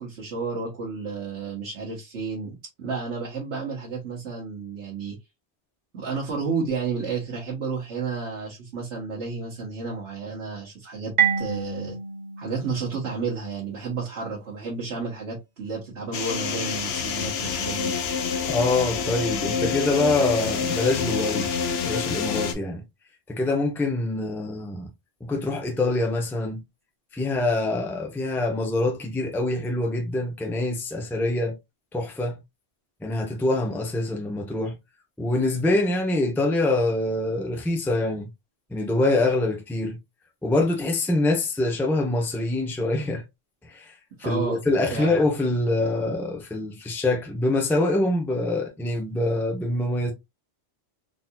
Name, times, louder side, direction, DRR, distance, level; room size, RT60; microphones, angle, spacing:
voice 1, 0.0-5.2 5.9-12.0 12.4-17.9 44.2-44.6 44.9-45.2, right 4 dB, 85° right, 1.4 m, -31 dB
Marimba xylophone, 11.2-13.8, right 8 dB, 45° right, 0.6 m, -28 dB
sound 1, 16.1-22.5, left 6 dB, 70° left, 0.9 m, -27 dB
voice 2, 18.5-21.5 21.8-22.8 23.3-24.9 25.2-26.6 27.1-31.5 31.9-32.4 33.0-34.8 35.2-38.3 38.7-40.0 40.4-43.2 43.6-43.9 44.2-50.1, left 2 dB, ahead, 0.6 m, -25 dB
3.9 x 2.8 x 2.3 m
omnidirectional pair, 1.1 m